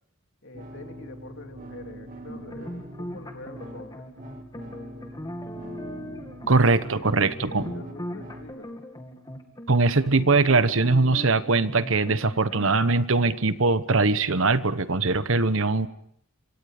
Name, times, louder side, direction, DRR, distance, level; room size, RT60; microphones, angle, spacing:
voice 1, 0.4-4.0 5.6-5.7 6.4-8.7, left 2 dB, 60° left, 4 dB, 3.1 m, -45 dB
sound 1, 0.5-8.5, right 1 dB, 40° right, 2.2 m, -43 dB
sound 2, 2.3-12.7, equal, 20° left, 2.3 m, -39 dB
voice 2, 6.5-7.7 9.7-15.9, right 3 dB, 70° right, 13 dB, 1.1 m, -21 dB
27.0 x 25.5 x 5.1 m, 0.70 s
head